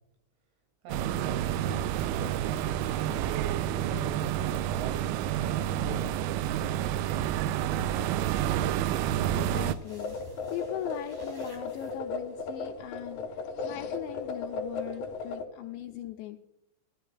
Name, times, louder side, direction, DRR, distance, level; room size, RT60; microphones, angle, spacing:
voice 1, 0.8-6.1, right 4 dB, 75° right, 4 dB, 5.0 m, -42 dB
Underground Air Conditioner Unit, 0.9-9.7, right 11 dB, 90° right, 2.6 m, -29 dB
sound 1, 7.8-12.3, left 1 dB, 45° right, 5.1 m, -54 dB
voice 2, 8.9-10.2 10.5-16.4, left 12 dB, 90° left, 3 dB, 2.6 m, -40 dB
sound 2, 9.8-15.4, left 4 dB, 65° left, 2.5 m, -36 dB
17.0 x 12.0 x 2.3 m, 0.85 s
omnidirectional pair, 5.8 m